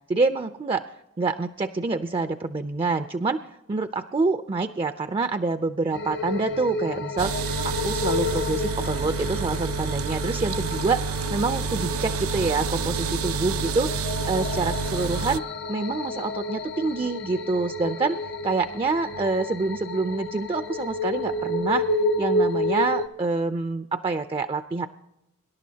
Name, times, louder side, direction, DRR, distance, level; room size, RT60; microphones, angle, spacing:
voice 1, 0.1-0.8 1.2-3.4 3.7-7.4 7.6-15.4 15.7-18.2 18.4-21.8 22.2-24.9, right 3 dB, 25° right, 10 dB, 0.4 m, -26 dB
sound 1, 5.9-23.1, left 2 dB, 55° left, 0.7 m, -30 dB
sound 2, 7.2-15.4, right 5 dB, 85° right, 0.5 m, -29 dB
24.0 x 11.5 x 2.8 m, 0.90 s
head